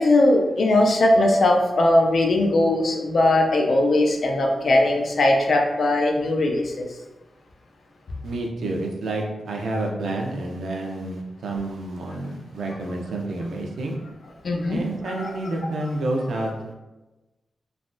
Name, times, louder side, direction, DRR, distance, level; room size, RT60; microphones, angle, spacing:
voice 1, 0.0-6.9 14.4-14.8 15.2-15.3, left 1 dB, 50° left, 2 dB, 0.4 m, -19 dB
voice 2, 8.2-14.0 14.7-16.5, right 2 dB, 85° right, 1 dB, 0.4 m, -29 dB
3.2 x 2.2 x 2.5 m, 1.1 s
wide cardioid pair, 175°, 0 cm